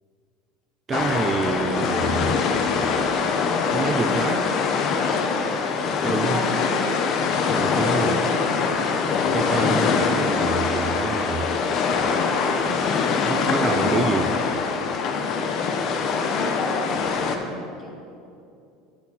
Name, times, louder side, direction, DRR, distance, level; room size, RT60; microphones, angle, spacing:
sound 1, 0.9-17.4, left 5 dB, 50° left, 0.8 m, -23 dB
voice 1, 0.9-2.4 3.7-4.5 6.0-6.4 7.5-8.3 9.3-11.5 13.2-14.4, right 5 dB, 25° right, 8 dB, 0.4 m, -27 dB
voice 2, 6.2-6.9 16.3-17.9, left 2 dB, 25° left, 0 dB, 1.5 m, -33 dB
10.0 x 3.5 x 7.0 m, 2.6 s
supercardioid pair, 115°, 0 cm